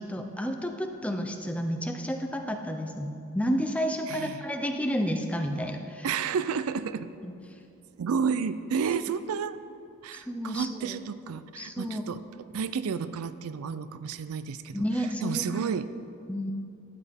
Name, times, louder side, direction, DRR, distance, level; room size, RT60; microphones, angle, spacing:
voice 1, 0.0-6.1 7.2-7.3 10.1-11.0 11.6-12.0 14.7-15.6 16.3-16.5, equal, 5° left, 4 dB, 0.5 m, -31 dB
voice 2, 4.1-4.5 6.0-7.1 8.0-9.6 10.0-12.2 12.5-15.9, right 6 dB, 85° right, 13 dB, 0.4 m, -31 dB
12.0 x 9.8 x 3.5 m, 2.6 s
head